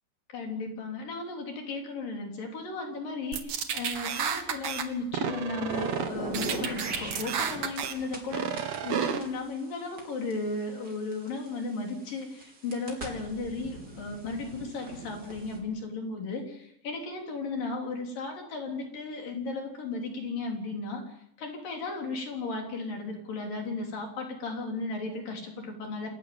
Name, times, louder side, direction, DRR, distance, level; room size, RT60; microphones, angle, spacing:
voice 1, 0.3-26.1, left 3 dB, 50° left, 2 dB, 4.9 m, -35 dB
sound 1, 3.3-4.8 5.1-6.1 6.3-7.9 8.3-9.2, right 7 dB, 60° right, 1.8 m, -31 dB
sound 2, 5.7-8.2 8.6-11.5 12.1-15.6, right 2 dB, 25° right, 4.0 m, -39 dB
28.0 x 14.5 x 8.7 m, 0.78 s
omnidirectional pair, 5.3 m